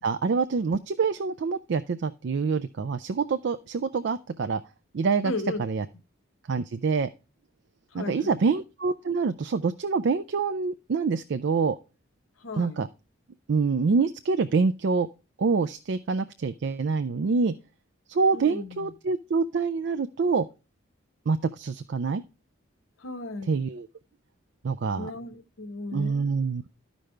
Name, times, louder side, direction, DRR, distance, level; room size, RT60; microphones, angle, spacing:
voice 1, 0.0-4.6 4.9-5.3 5.6-5.9 6.5-7.1 7.9-11.8 12.6-12.9 13.5-15.1 15.4-17.5 18.1-20.5 21.3-22.2 23.5-23.9 24.6-25.1 25.9-26.7, right 4 dB, 60° right, 0.4 m, -26 dB
voice 2, 5.2-5.6 7.9-8.4 12.4-12.8 18.3-18.9 23.0-23.6 25.0-26.4, left 2 dB, 90° left, 1.1 m, -36 dB
12.5 x 5.2 x 3.2 m
head